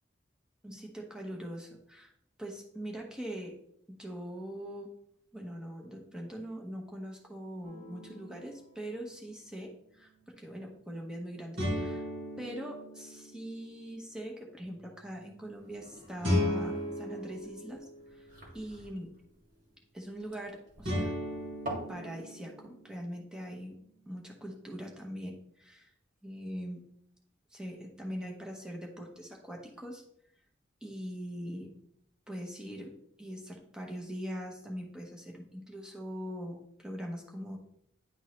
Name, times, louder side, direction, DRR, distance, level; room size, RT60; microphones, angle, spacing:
voice 1, 0.6-2.1 2.4-3.6 3.9-4.9 5.3-12.1 12.4-18.3 18.5-19.1 19.9-21.2 21.9-23.8 24.1-25.9 26.2-26.9 27.5-30.0 30.8-31.8 32.3-37.6, equal, 5° right, -1 dB, 1.0 m, -42 dB
sound 1, 7.6-8.6 11.6-13.7 16.2-18.4 20.9-23.0, left 1 dB, 85° right, 2.5 m, -35 dB
sound 2, 15.5-22.0, right 1 dB, 45° right, 2.2 m, -46 dB
10.5 x 3.6 x 3.2 m, 0.71 s
head